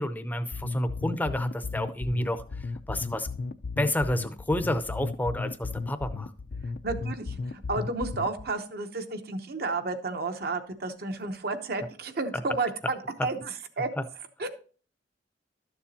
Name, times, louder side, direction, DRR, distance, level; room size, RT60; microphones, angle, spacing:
voice 1, 0.0-2.4 2.9-3.3 3.8-6.3, left 1 dB, 10° left, 10 dB, 0.6 m, -29 dB
sound 1, 0.5-8.5, left 3 dB, 55° left, 0.4 m, -34 dB
voice 2, 6.8-13.9 14.4-14.5, right 3 dB, 55° right, 8 dB, 0.9 m, -32 dB
12.5 x 7.0 x 2.8 m, 0.41 s
head